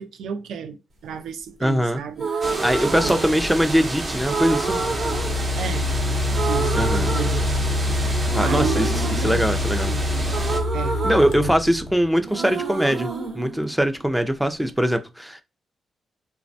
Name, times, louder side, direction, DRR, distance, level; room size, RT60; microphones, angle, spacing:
voice 1, 0.0-3.1 5.6-5.9 6.5-6.8 7.1-7.6 8.4-10.3 10.7-11.5, right 7 dB, 85° right, 0.4 m, -33 dB
voice 2, 1.6-2.0 2.6-4.8 6.7-7.1 8.4-9.0 9.2-9.9 11.0-13.1 13.3-15.4, equal, 5° right, 0.3 m, -21 dB
sound 1, 2.1-3.8 4.3-6.0 6.3-7.9 8.3-12.0 12.2-14.3, right 4 dB, 55° right, 0.9 m, -29 dB
sound 2, 2.4-10.6, right 1 dB, 30° right, 0.7 m, -30 dB
sound 3, 3.1-3.3 4.2-12.2, left 2 dB, 80° left, 0.4 m, -26 dB
3.2 x 2.1 x 2.6 m
cardioid pair, 120°, 0 cm